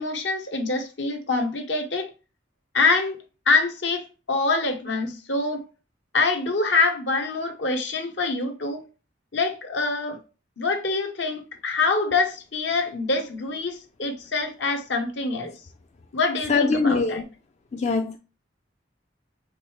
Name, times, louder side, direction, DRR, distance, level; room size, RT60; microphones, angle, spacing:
voice 1, 0.0-2.1 2.7-3.2 3.5-5.6 6.1-8.8 9.3-10.2 10.6-15.5 16.1-17.2, left 3 dB, 70° left, 1.0 m, -25 dB
voice 2, 16.5-17.2 17.7-18.2, left 4 dB, 40° left, 0.4 m, -22 dB
5.1 x 3.1 x 3.2 m
head